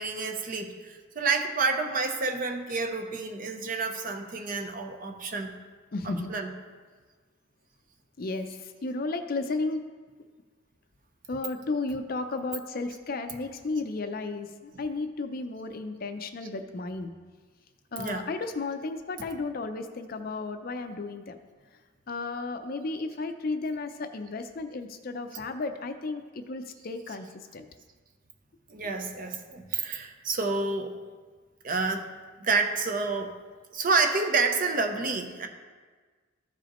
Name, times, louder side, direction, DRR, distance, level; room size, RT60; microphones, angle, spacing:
voice 1, 0.0-5.6 6.0-6.6 14.7-14.8 18.0-18.3 28.7-30.9 31.6-32.1 32.4-33.3 33.7-35.5, right 4 dB, 45° right, 5 dB, 0.7 m, -29 dB
voice 2, 5.9-6.3 8.2-9.8 11.3-17.1 17.9-21.4 22.1-27.7, left 3 dB, 45° left, 7 dB, 0.5 m, -33 dB
14.0 x 4.9 x 3.0 m, 1.4 s
head